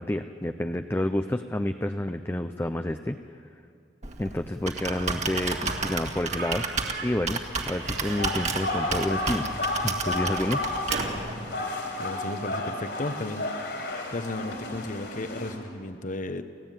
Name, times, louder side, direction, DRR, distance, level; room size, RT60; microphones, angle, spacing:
voice 1, 0.0-3.2 4.2-6.6 7.0-7.4 7.7-9.5 9.8-10.6, left 1 dB, 15° left, 7 dB, 0.6 m, -29 dB
Computer keyboard, 4.0-11.3, right 4 dB, 40° right, 1.9 m, -32 dB
Slam / Squeak, 4.6-4.7 4.9-12.3, right 3 dB, 70° right, 3.5 m, -39 dB
sound 1, 7.9-15.5, left 2 dB, 70° left, 4.6 m, -32 dB
voice 2, 12.0-13.5 14.1-16.4, left 2 dB, 45° left, 9 dB, 1.1 m, -34 dB
29.5 x 15.5 x 9.2 m, 2.4 s
head